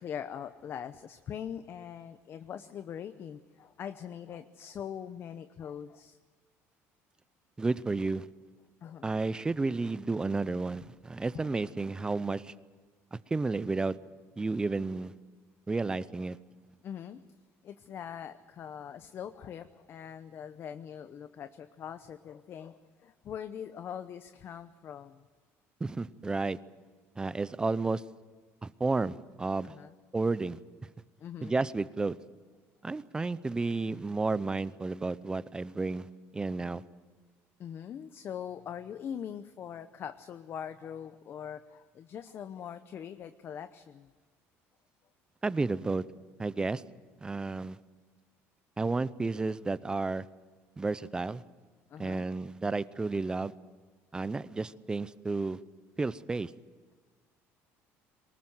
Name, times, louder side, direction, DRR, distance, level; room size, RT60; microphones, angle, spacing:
voice 1, 0.0-6.2 8.8-9.1 11.3-11.5 16.8-17.2 17.6-25.3 29.6-30.0 31.2-31.6 37.6-44.1 51.9-52.3, left 8 dB, 45° left, 11 dB, 0.8 m, -42 dB
voice 2, 7.6-8.3 9.0-12.5 13.1-14.0 14.4-15.1 15.7-16.4 25.8-26.6 27.2-28.0 28.6-29.7 30.1-30.6 31.4-32.2 32.8-36.1 36.3-36.8 45.4-46.0 46.4-46.8 47.2-47.8 48.8-50.3 50.8-51.4 52.0-53.5 54.1-55.6 56.0-56.5, right 3 dB, 15° right, 17 dB, 0.7 m, -32 dB
23.0 x 20.0 x 7.9 m, 1.5 s
cardioid pair, 130°, 6 cm